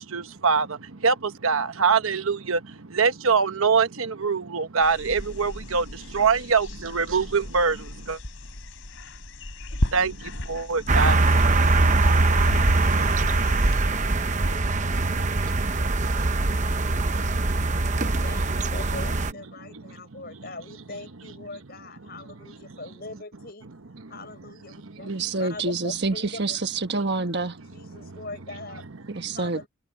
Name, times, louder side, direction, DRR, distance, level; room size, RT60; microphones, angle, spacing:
voice 1, 0.0-8.2 9.9-11.3 12.7-14.0 14.3-18.7 19.5-20.5 22.0-22.8 23.6-24.1 24.4-25.4 27.9-28.3 28.7-29.4, right 5 dB, 75° right, 1.1 m, -27 dB
sound 1, 4.8-13.8, left 1 dB, 70° left, 3.6 m, -34 dB
sound 2, 10.9-19.3, right 2 dB, 35° right, 0.8 m, -22 dB
voice 2, 17.8-23.7 24.1-25.1 25.4-26.6 27.7-28.8 29.3-29.7, left 2 dB, 45° left, 6.6 m, -41 dB
voice 3, 25.1-27.6 29.1-29.7, right 3 dB, 50° right, 1.4 m, -27 dB
head